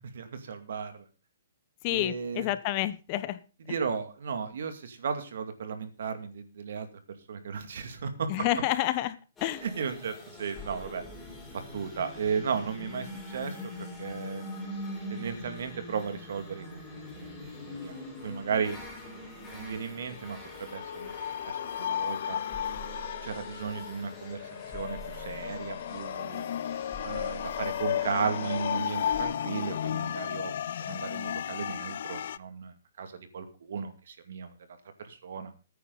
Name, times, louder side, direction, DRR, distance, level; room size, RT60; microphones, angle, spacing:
voice 1, 0.1-1.1 1.9-2.5 3.7-6.9 7.3-8.3 9.6-11.0 11.5-14.4 15.1-16.8 17.2-21.1 21.4-22.4 23.2-24.4 24.7-26.4 27.0-30.5 30.9-34.5 35.0-35.5, right 6 dB, 70° right, 8 dB, 2.4 m, -35 dB
voice 2, 1.8-3.4 8.3-9.6, left 15 dB, 35° left, 14 dB, 1.0 m, -29 dB
sound 1, 9.4-29.3, left 1 dB, 10° left, 6.3 m, -44 dB
sound 2, 20.0-32.4, left 9 dB, 60° left, 0.5 m, -34 dB
15.0 x 9.4 x 4.1 m, 0.34 s
hypercardioid pair, 140°, 0 cm